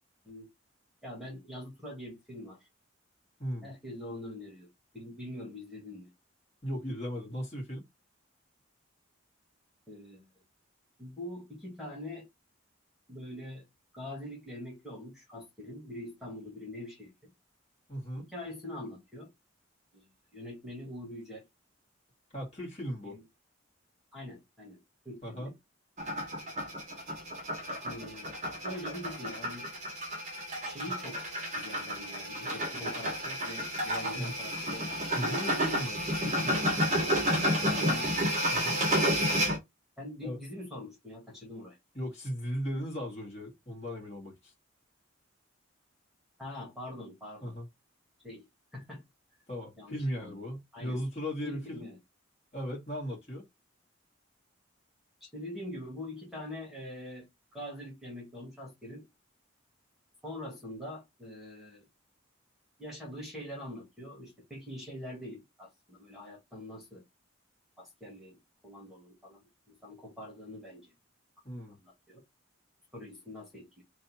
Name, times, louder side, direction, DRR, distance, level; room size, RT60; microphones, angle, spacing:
voice 1, 1.0-2.6 3.6-4.7 4.9-6.1 9.9-10.3 11.0-12.3 13.1-13.6 13.9-17.3 18.2-19.3 19.9-21.4 23.0-23.2 24.1-25.5 27.8-28.3 28.6-29.7 30.6-31.3 31.5-35.5 37.8-38.2 40.0-41.8 46.4-47.5 48.2-48.4 48.7-49.0 49.8-50.4 50.7-51.0 51.4-52.0 55.2-57.3 57.5-59.1 60.2-61.9 62.8-67.0 67.8-70.9 71.8-72.2 72.9-73.8, left 1 dB, ahead, 1.6 m, -44 dB
voice 2, 6.6-7.8 17.9-18.3 22.3-23.2 25.2-25.5 34.2-34.3 35.1-36.6 38.5-38.8 40.2-40.4 41.9-44.5 47.4-47.7 49.5-51.8 52.5-53.4 71.4-71.8, equal, 30° left, 1.8 m, -37 dB
sound 1, 26.0-39.6, equal, 35° right, 1.1 m, -31 dB
3.3 x 2.7 x 4.1 m
head